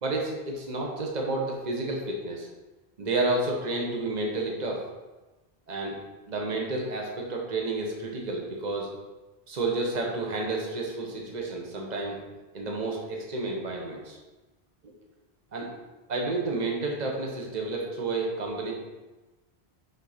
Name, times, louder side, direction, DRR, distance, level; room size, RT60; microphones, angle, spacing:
voice 1, 0.0-2.5 3.0-4.8 5.7-6.0 6.3-8.9 9.5-12.2 12.5-14.2 14.8-14.9 15.5-15.7 16.1-18.7, right 2 dB, 45° right, 0 dB, 1.2 m, -30 dB
6.5 x 4.0 x 5.0 m, 1.2 s
omnidirectional pair, 1.1 m